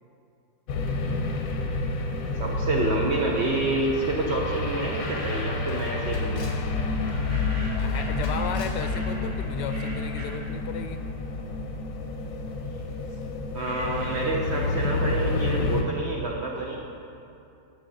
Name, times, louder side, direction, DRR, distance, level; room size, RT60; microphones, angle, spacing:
sound 1, 0.7-15.8, left 3 dB, 60° left, 1.0 m, -29 dB
voice 1, 2.4-6.5 13.5-16.8, right 2 dB, 70° right, -1 dB, 0.6 m, -28 dB
Camera, 4.6-4.7 5.0-5.1 5.7-6.7 7.1-7.4 7.8-8.8, left 2 dB, 25° left, 0.5 m, -48 dB
sound 2, 4.8-6.0 6.9-11.2 11.5-15.3, right 1 dB, 30° right, 1.2 m, -43 dB
voice 2, 7.1-11.0, left 7 dB, 80° left, 7 dB, 1.2 m, -34 dB
14.0 x 5.1 x 3.9 m, 2.7 s
omnidirectional pair, 1.9 m